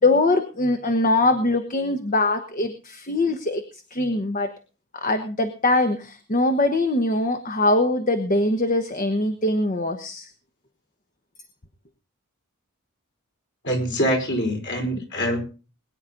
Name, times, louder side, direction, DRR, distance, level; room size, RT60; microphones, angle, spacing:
voice 1, 0.0-4.5 4.9-10.3, left 2 dB, 35° left, 7 dB, 1.1 m, -22 dB
voice 2, 13.6-15.4, equal, 55° left, 2 dB, 4.6 m, -24 dB
22.0 x 9.7 x 3.9 m, 0.35 s
head